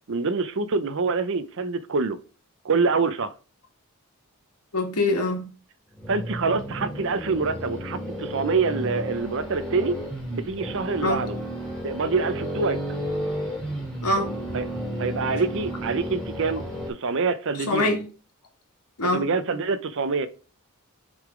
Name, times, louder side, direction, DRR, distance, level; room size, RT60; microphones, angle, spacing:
voice 1, 0.1-2.2 2.6-3.3 6.1-10.0 10.3-11.4 11.8-12.8 14.5-14.6 15.0-18.0 19.1-20.3, right 4 dB, 60° right, 0.7 m, -26 dB
voice 2, 4.7-5.5 11.0-11.2 14.0-14.3 17.7-18.0 19.0-19.3, left 2 dB, 85° left, 1.8 m, -24 dB
sound 1, 6.0-16.9, equal, 5° left, 2.2 m, -32 dB
6.2 x 3.8 x 4.9 m
head